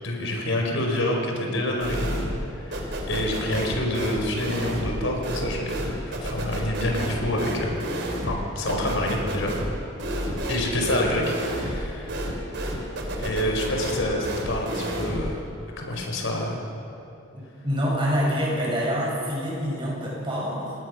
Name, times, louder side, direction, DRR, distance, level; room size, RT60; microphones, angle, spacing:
voice 1, 0.0-2.1 2.6-2.8 3.1-5.8 6.1-7.8 8.2-9.5 10.5-12.2 13.2-15.4 15.8-16.6, left 1 dB, 70° left, 1 dB, 4.8 m, -27 dB
sound 1, 1.8-2.5 2.7-15.3, equal, 60° right, 3.7 m, -30 dB
voice 2, 17.3-20.7, equal, 25° right, -4 dB, 7.5 m, -26 dB
28.5 x 19.5 x 6.4 m, 2.8 s
head